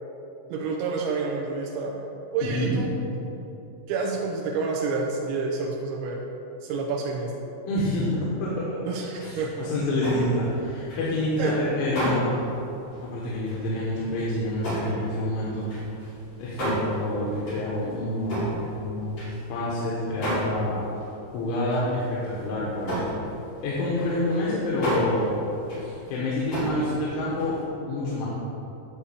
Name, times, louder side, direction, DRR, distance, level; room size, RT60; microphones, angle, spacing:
voice 1, 0.5-2.0 2.3-3.0 3.9-6.2 6.6-7.3 8.8-9.5 11.4-11.5, right 4 dB, 80° right, -1 dB, 2.8 m, -28 dB
voice 2, 2.5-3.1 7.7-8.1 8.4-8.7 9.2-12.4 13.0-15.7 16.4-19.1 19.5-20.8 21.3-23.1 23.6-25.4 25.8-27.6 27.9-28.3, left 1 dB, 75° left, -6 dB, 3.6 m, -27 dB
sound 1, 9.2-12.5 12.9-13.1 13.4-13.8 14.1-19.8 20.2-20.7 20.9-21.1 21.5-21.9 22.2-22.5 22.7-27.6, equal, 40° left, 2.7 m, -32 dB
11.5 x 4.1 x 7.3 m, 3.0 s
omnidirectional pair, 5.7 m